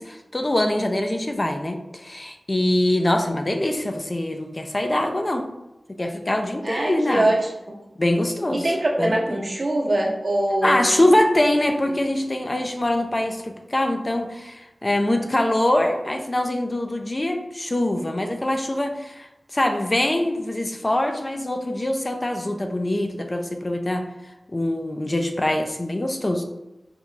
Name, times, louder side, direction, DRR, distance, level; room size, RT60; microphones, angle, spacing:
voice 1, 0.0-5.5 6.0-7.3 8.0-8.7 9.0-9.4 10.6-24.1 24.5-26.4, left 1 dB, 30° left, 4 dB, 0.4 m, -23 dB
voice 2, 6.6-7.5 8.5-11.0 11.3-11.4 11.9-12.0, right 1 dB, 55° right, -2 dB, 0.8 m, -23 dB
5.1 x 2.3 x 3.1 m, 0.94 s
wide cardioid pair, 60°, 0 cm